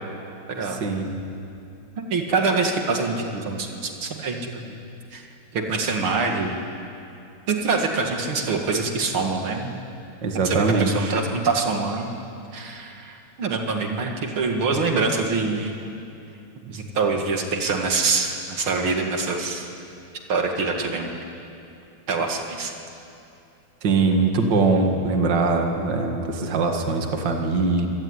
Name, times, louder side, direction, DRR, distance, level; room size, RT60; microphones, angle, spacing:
voice 1, 0.7-1.1 10.2-11.1 23.8-27.9, right 3 dB, 60° right, 3 dB, 2.4 m, -22 dB
voice 2, 2.0-4.7 5.1-5.3 5.5-6.6 7.5-9.7 10.4-12.1 12.5-15.7 16.6-19.7 20.3-21.2 22.1-22.7, right 4 dB, 80° right, 2 dB, 2.8 m, -25 dB
26.0 x 18.0 x 9.7 m, 2.7 s
omnidirectional pair, 2.3 m